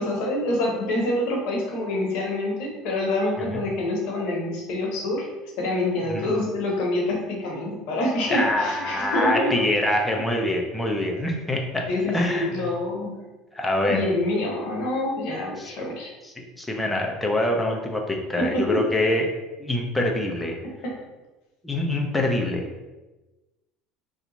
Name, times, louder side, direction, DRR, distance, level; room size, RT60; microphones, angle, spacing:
voice 1, 0.0-5.3 5.6-9.5 11.9-13.2 13.9-16.1 18.4-18.8 20.8-21.0, left 1 dB, 70° left, -1 dB, 1.0 m, -26 dB
voice 2, 8.3-11.9 12.1-12.6 13.5-14.0 15.6-15.7 16.2-19.3 19.6-20.6 21.6-22.7, left 1 dB, 10° left, 1 dB, 0.7 m, -25 dB
2.8 x 2.4 x 3.9 m, 1.1 s
supercardioid pair, 90°, 0 cm